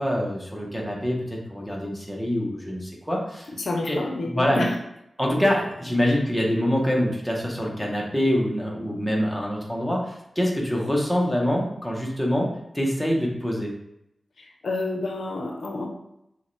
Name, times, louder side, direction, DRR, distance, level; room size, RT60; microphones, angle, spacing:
voice 1, 0.0-3.5 3.9-4.6 5.2-12.5 12.7-13.7, equal, 5° left, -2 dB, 0.8 m, -25 dB
voice 2, 3.6-4.7 14.4-15.9, left 2 dB, 70° left, 1 dB, 0.7 m, -29 dB
6.3 x 2.2 x 3.1 m, 0.82 s
wide cardioid pair, 120°, 0 cm